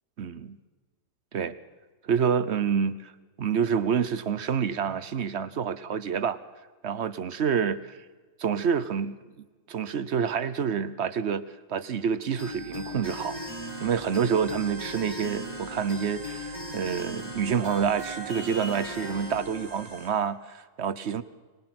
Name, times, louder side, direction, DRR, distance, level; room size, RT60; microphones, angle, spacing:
voice 1, 0.2-0.6 1.3-1.5 2.0-3.1 3.4-6.4 6.8-8.0 8.4-11.4 11.7-13.4 13.8-21.2, right 7 dB, 55° right, 13 dB, 1.1 m, -28 dB
Unknown Angel, 12.4-19.4, equal, 20° left, 7.6 m, -38 dB
sound 1, 13.0-20.1, right 1 dB, 55° left, 5.9 m, -45 dB
24.5 x 19.0 x 6.0 m, 1.3 s
omnidirectional pair, 1.4 m